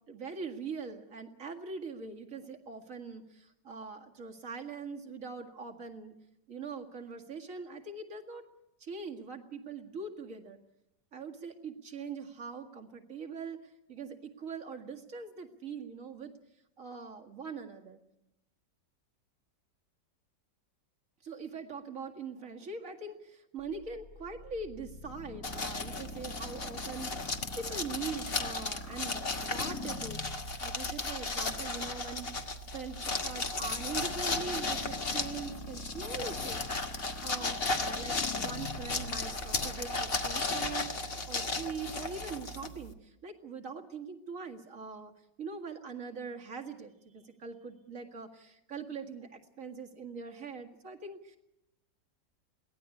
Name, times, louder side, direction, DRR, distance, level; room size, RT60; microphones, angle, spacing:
voice 1, 0.1-6.1 6.5-8.5 8.8-10.6 11.1-16.3 16.8-18.0 21.2-36.6 36.9-45.1 45.4-51.4, right 5 dB, 50° right, 3 dB, 2.3 m, -42 dB
sound 1, 23.6-40.8, left 4 dB, 55° left, 2.0 m, -46 dB
sound 2, 25.4-42.9, left 3 dB, 35° left, 1.5 m, -35 dB
22.5 x 17.5 x 8.4 m, 0.85 s
omnidirectional pair, 1.9 m